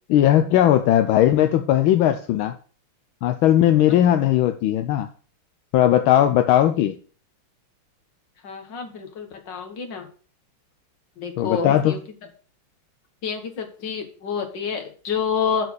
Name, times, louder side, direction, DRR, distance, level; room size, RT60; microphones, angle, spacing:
voice 1, 0.1-2.6 3.2-5.1 5.7-7.0 11.4-12.0, left 12 dB, 85° left, 8 dB, 1.5 m, -18 dB
voice 2, 8.4-10.1 11.2-12.0 13.2-15.7, left 6 dB, 60° left, 5 dB, 2.2 m, -28 dB
11.0 x 4.3 x 6.4 m, 0.40 s
omnidirectional pair, 2.2 m